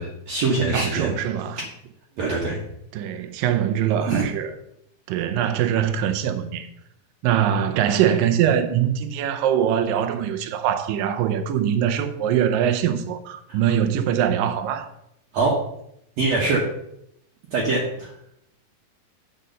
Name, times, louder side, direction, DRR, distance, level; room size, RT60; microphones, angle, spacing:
voice 1, 0.0-1.1 1.6-1.7 2.2-2.6 4.0-4.2 13.5-13.6 15.3-15.5 16.2-16.6 17.5-18.1, right 3 dB, 60° right, 2.2 m, -23 dB
voice 2, 0.7-1.6 2.9-4.5 5.1-6.7 7.2-14.9, right 9 dB, 80° right, 2.4 m, -22 dB
8.4 x 5.3 x 6.7 m
omnidirectional pair, 4.0 m